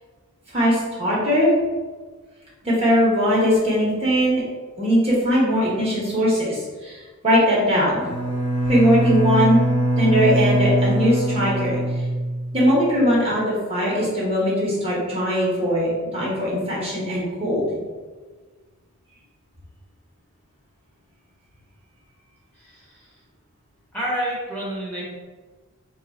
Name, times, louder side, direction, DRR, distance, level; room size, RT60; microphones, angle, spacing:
voice 1, 0.5-1.5 2.6-4.4 4.8-7.0 7.2-8.0 8.7-9.6 10.0-11.8 12.5-17.8, equal, 30° right, -7 dB, 1.0 m, -20 dB
Bowed string instrument, 8.0-12.7, right 1 dB, 90° left, 1.1 m, -22 dB
voice 2, 22.5-23.1 23.9-25.0, right 1 dB, 10° left, -7 dB, 1.2 m, -29 dB
3.8 x 2.4 x 4.0 m, 1.4 s
head